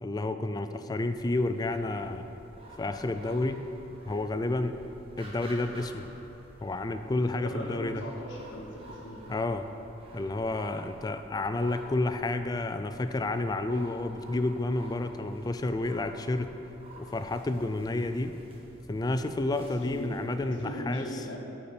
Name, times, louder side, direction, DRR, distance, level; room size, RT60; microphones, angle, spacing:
voice 1, 0.0-2.3 2.8-3.6 4.1-4.8 5.2-6.1 6.6-8.0 9.3-9.7 10.1-16.5 17.0-18.3 18.9-21.2, left 2 dB, 20° left, 9 dB, 0.3 m, -30 dB
sound 1, 1.1-20.6, right 1 dB, 30° right, 1.2 m, -51 dB
voice 2, 7.3-9.2 19.6-21.4, equal, 65° left, -5 dB, 1.1 m, -39 dB
10.0 x 4.3 x 6.8 m, 3.0 s
head